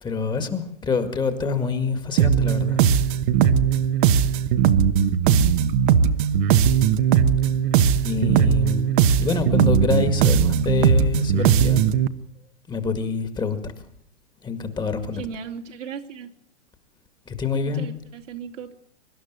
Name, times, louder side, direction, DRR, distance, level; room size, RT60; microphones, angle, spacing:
voice 1, 0.0-2.9 8.0-8.9 9.2-11.8 12.7-13.7 14.4-15.2 17.3-17.9, left 5 dB, 10° left, 9 dB, 2.0 m, -26 dB
sound 1, 2.2-12.1, right 8 dB, 45° right, 1.2 m, -19 dB
voice 2, 15.2-16.3 17.7-18.7, right 7 dB, 80° right, 2 dB, 3.3 m, -36 dB
24.5 x 12.0 x 9.2 m, 0.67 s
hypercardioid pair, 140°, 36 cm